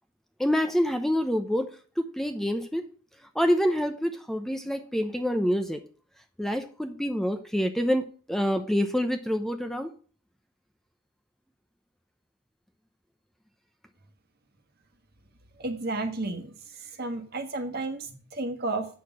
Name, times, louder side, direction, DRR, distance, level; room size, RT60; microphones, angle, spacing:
voice 1, 0.4-1.7 2.0-2.9 3.3-5.8 6.4-9.9, equal, ahead, 7 dB, 0.7 m, -27 dB
voice 2, 15.6-16.5 16.8-18.9, right 2 dB, 50° right, 6 dB, 1.6 m, -32 dB
8.5 x 6.6 x 6.0 m, 0.41 s
head